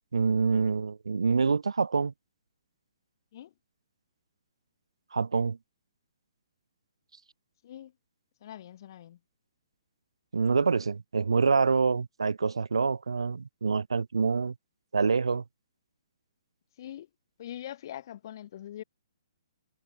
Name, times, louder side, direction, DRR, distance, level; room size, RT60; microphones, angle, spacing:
voice 1, 0.1-2.1 5.1-5.6 10.3-14.5 14.9-15.4, right 5 dB, 80° right, 3.0 m, -26 dB
voice 2, 8.4-9.2 16.8-17.1 17.4-18.8, left 11 dB, 50° left, 6.0 m, -42 dB
hypercardioid pair, 135°, 3 cm